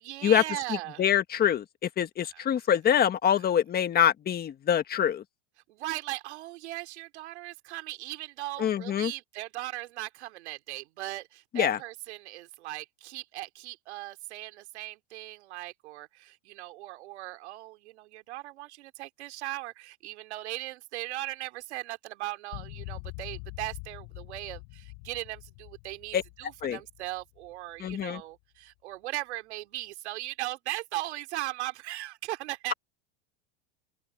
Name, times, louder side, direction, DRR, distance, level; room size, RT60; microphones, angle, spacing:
voice 1, 0.0-1.0 2.3-2.4 5.7-32.7, right 17 dB, 80° right, 3.0 m, -38 dB
voice 2, 0.7-5.2 8.6-9.1 11.5-11.8 26.1-26.2 26.6-26.8 27.8-28.2, left 9 dB, 30° left, 1.6 m, -25 dB
sound 1, 22.5-27.9, left 40 dB or more, 60° left, 6.8 m, -44 dB
open air
supercardioid pair, 125°, 33 cm